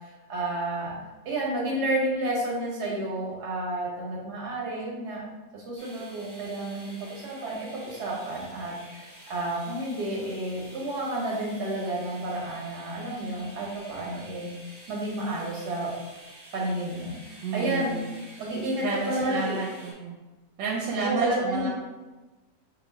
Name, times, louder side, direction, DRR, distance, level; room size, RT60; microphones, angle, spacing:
voice 1, 0.3-0.9 1.2-5.2 5.5-14.5 14.9-15.9 16.5-18.0 18.4-19.6 20.9-21.7, right 1 dB, 70° right, -3 dB, 1.5 m, -30 dB
sound 1, 5.8-19.9, right 1 dB, 10° right, 1.0 m, -49 dB
voice 2, 17.4-18.0 18.8-20.2 20.6-21.7, right 4 dB, 85° right, -4 dB, 1.3 m, -31 dB
2.9 x 2.9 x 4.0 m, 1.2 s
omnidirectional pair, 1.9 m